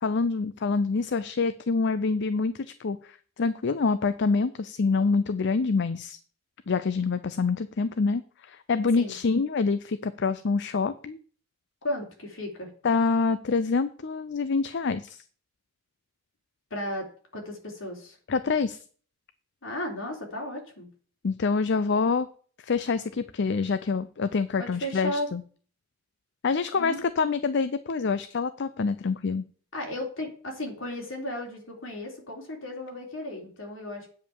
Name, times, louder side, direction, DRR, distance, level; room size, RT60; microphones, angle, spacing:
voice 1, 0.0-6.2 6.7-11.2 12.8-15.2 18.3-18.8 21.2-22.3 22.6-25.4 26.4-29.4, left 4 dB, 60° left, 13 dB, 0.5 m, -26 dB
voice 2, 11.8-12.7 16.7-17.1 17.3-18.2 19.6-20.9 24.6-25.3 26.8-27.0 29.7-34.1, left 1 dB, 75° left, 1 dB, 3.7 m, -34 dB
9.1 x 5.3 x 7.1 m, 0.43 s
head